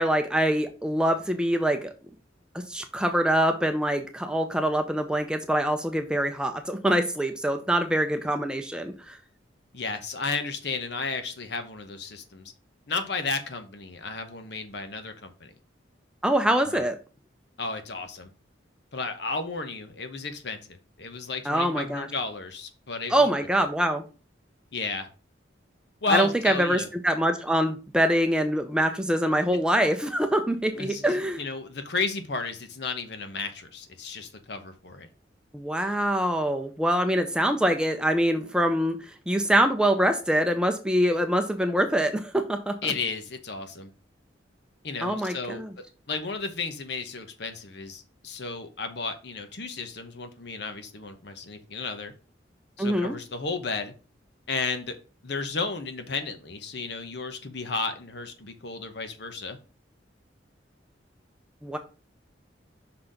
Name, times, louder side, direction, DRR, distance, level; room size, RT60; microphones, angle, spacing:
voice 1, 0.0-1.9 2.5-9.2 16.2-16.9 21.5-22.1 23.1-24.0 26.1-31.4 35.5-39.0 39.3-42.7 45.0-45.7 52.8-53.2 61.6-61.8, right 1 dB, 5° right, 6 dB, 0.6 m, -24 dB
voice 2, 9.7-12.5 12.9-15.5 16.6-16.8 17.6-18.3 18.9-23.5 24.7-25.1 26.0-26.9 30.8-35.1 42.8-43.9 44.8-45.6 46.1-52.1 52.8-53.9 54.5-55.0 55.2-59.6, left 4 dB, 60° left, 8 dB, 1.0 m, -33 dB
5.8 x 4.1 x 5.1 m, 0.34 s
head